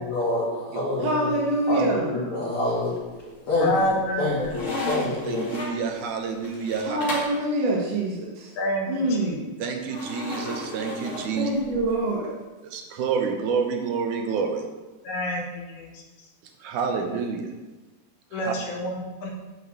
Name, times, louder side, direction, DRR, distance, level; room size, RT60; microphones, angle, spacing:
voice 1, 0.0-1.3 1.7-5.5, left 2 dB, 45° left, -9 dB, 3.3 m, -27 dB
voice 2, 1.0-2.1 6.8-8.5 8.9-9.5 11.3-12.3, right 1 dB, 60° right, -3 dB, 2.5 m, -25 dB
sound 1, 2.8-3.4 3.8-7.4 9.9-11.9, left 1 dB, 25° left, 2.2 m, -35 dB
voice 3, 3.6-4.5 8.6-9.3 15.0-15.4 15.8-15.9 18.3-19.3, left 1 dB, 75° left, -1 dB, 3.1 m, -28 dB
voice 4, 5.2-7.0 9.6-11.5 12.6-14.7 16.6-17.5 18.3-18.6, right 5 dB, 80° right, 4 dB, 2.5 m, -28 dB
9.4 x 5.8 x 7.3 m, 1.2 s
omnidirectional pair, 3.5 m